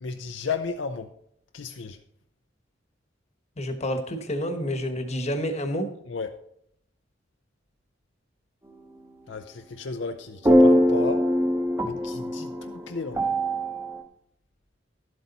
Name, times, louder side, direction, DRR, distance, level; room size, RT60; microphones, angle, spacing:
voice 1, 0.0-1.1 1.5-2.0 6.1-6.4 9.3-11.3 11.8-13.3, left 4 dB, 70° left, 0.6 m, -33 dB
voice 2, 3.6-5.9, equal, 35° left, 1.1 m, -29 dB
sound 1, 10.5-14.0, equal, 15° right, 0.9 m, -21 dB
12.0 x 7.9 x 4.1 m
head